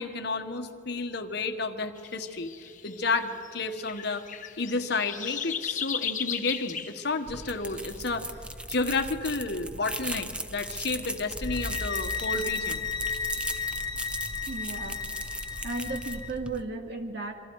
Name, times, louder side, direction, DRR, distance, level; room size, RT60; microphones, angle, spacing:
voice 1, 0.0-2.5 2.8-4.3 4.6-8.3 8.7-12.9, left 3 dB, 60° left, 6 dB, 1.3 m, -31 dB
sound 1, 2.0-8.0, left 8 dB, 45° left, 1.2 m, -36 dB
sound 2, 7.3-16.6, right 1 dB, 5° right, 0.7 m, -37 dB
sound 3, 11.4-16.3, left 6 dB, 25° left, 0.9 m, -34 dB
voice 2, 14.5-15.0 15.6-17.3, right 3 dB, 60° right, 4 dB, 2.1 m, -35 dB
27.5 x 24.0 x 4.7 m, 2.5 s
head